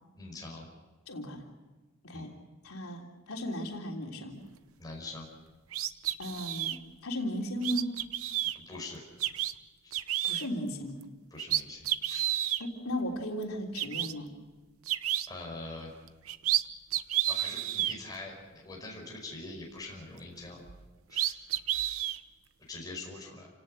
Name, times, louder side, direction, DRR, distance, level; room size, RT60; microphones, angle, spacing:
voice 1, 0.2-0.7 2.1-2.3 4.8-5.3 8.5-9.0 9.8-10.0 11.3-12.3 15.3-15.9 17.3-20.6 21.1-21.4 22.7-23.5, left 2 dB, 15° left, -1 dB, 5.2 m, -43 dB
voice 2, 1.1-1.4 2.0-2.3 2.6-4.4 6.2-7.9 10.2-11.0 12.6-14.3, equal, 85° left, 0 dB, 3.4 m, -36 dB
sound 1, 5.7-6.8 7.6-8.5 9.2-9.5 9.9-10.5 11.0-11.1 11.4-12.6 13.4-13.5 13.7-14.1 14.9-15.3 16.1-16.6 16.9-17.9 20.7-20.8 21.1-22.2, right 13 dB, 80° right, 0.8 m, -30 dB
29.0 x 18.0 x 6.5 m, 1.3 s
head